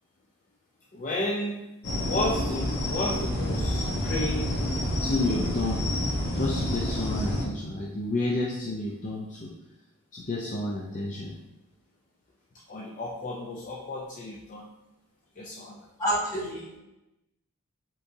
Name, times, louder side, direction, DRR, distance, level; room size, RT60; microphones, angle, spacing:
voice 1, 0.9-1.6 2.1-4.6 5.0-5.8 6.3-9.5 10.1-11.4 12.7-14.7 15.4-15.9, left 2 dB, 35° left, -3 dB, 0.5 m, -31 dB
sound 1, 1.8-7.4, left 1 dB, 55° left, 1.2 m, -28 dB
voice 2, 16.0-16.8, right 1 dB, 15° left, -6 dB, 1.4 m, -28 dB
4.6 x 3.9 x 2.7 m, 0.94 s
head